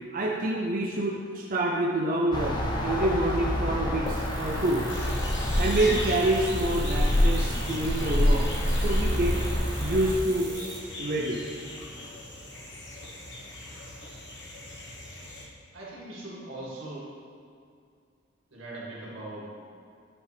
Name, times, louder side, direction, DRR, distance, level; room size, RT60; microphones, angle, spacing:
voice 1, 0.1-2.6 2.8-4.8 5.6-8.5 8.8-9.4 9.8-10.5 11.0-11.4, right 1 dB, 45° right, -2 dB, 0.5 m, -27 dB
sound 1, 2.3-10.2, left 1 dB, 20° left, 0.6 m, -27 dB
sound 2, 4.1-10.8, right 5 dB, 60° right, 1.1 m, -45 dB
sound 3, 4.9-15.5, left 1 dB, 60° left, 1.3 m, -40 dB
voice 2, 15.7-17.1 18.5-19.6, right 2 dB, 85° right, -6 dB, 1.9 m, -40 dB
9.6 x 5.4 x 3.4 m, 2.3 s
head